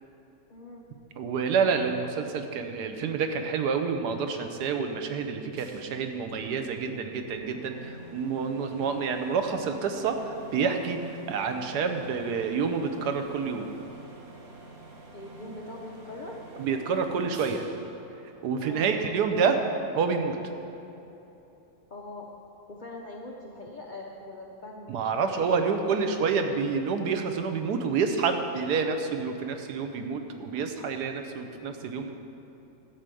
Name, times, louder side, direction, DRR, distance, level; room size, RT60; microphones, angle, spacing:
voice 1, 0.5-0.8 15.1-16.4 18.6-19.6 21.9-22.3 22.7-26.2, left 2 dB, 85° left, -2 dB, 0.4 m, -42 dB
voice 2, 1.2-13.7 16.6-17.6 18.4-19.6 19.9-20.4 24.9-32.1, right 5 dB, 65° right, 6 dB, 1.2 m, -28 dB
sound 1, 5.6-19.1, right 2 dB, 40° right, 1.3 m, -48 dB
12.0 x 5.0 x 7.7 m, 3.0 s
omnidirectional pair, 2.0 m